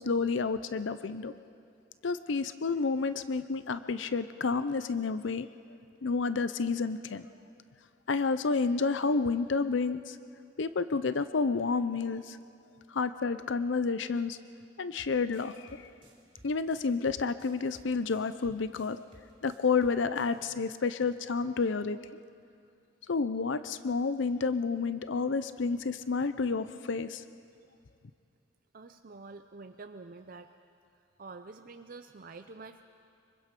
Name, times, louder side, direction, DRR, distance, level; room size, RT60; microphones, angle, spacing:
voice 1, 0.0-1.3 2.0-5.5 6.0-7.3 8.1-10.2 10.6-12.4 12.9-14.4 14.8-15.8 16.4-19.0 19.4-22.0 23.1-27.2, left 4 dB, 70° left, 13 dB, 0.6 m, -30 dB
sound 1, 15.0-20.4, right 1 dB, 25° right, 3.8 m, -58 dB
voice 2, 28.7-30.5 31.2-32.8, right 3 dB, 45° right, 7 dB, 0.6 m, -47 dB
25.0 x 24.0 x 5.3 m, 2.4 s
head